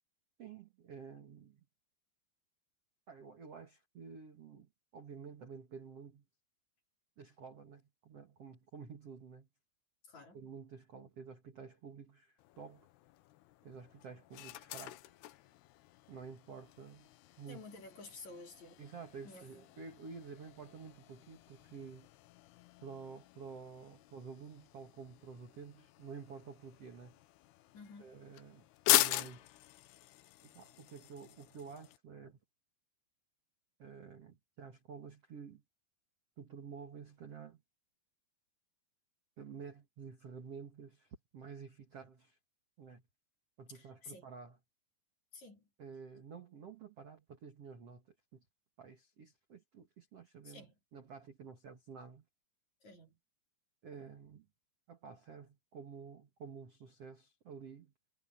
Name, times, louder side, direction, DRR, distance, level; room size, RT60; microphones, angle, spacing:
voice 1, 0.4-1.6 3.1-6.2 7.2-9.5 10.3-12.9 13.6-15.0 16.1-17.1 17.4-17.6 18.8-22.1 22.8-27.2 28.0-29.6 30.4-32.4 33.8-35.6 36.4-37.6 39.4-42.4 42.8-43.0 43.6-44.6 45.8-48.1 48.3-48.4 48.8-50.6 50.9-52.2 53.8-54.5 54.9-57.9, right 6 dB, 55° right, 1.7 m, -50 dB
voice 2, 10.0-10.4 17.5-18.9 19.2-19.6 27.7-28.2 43.7-44.3 45.3-45.7 50.4-50.7 52.8-53.2, left 3 dB, 35° left, 5.3 m, -52 dB
sound 1, 12.4-32.0, left 16 dB, 80° left, 2.4 m, -41 dB
omnidirectional pair, 5.8 m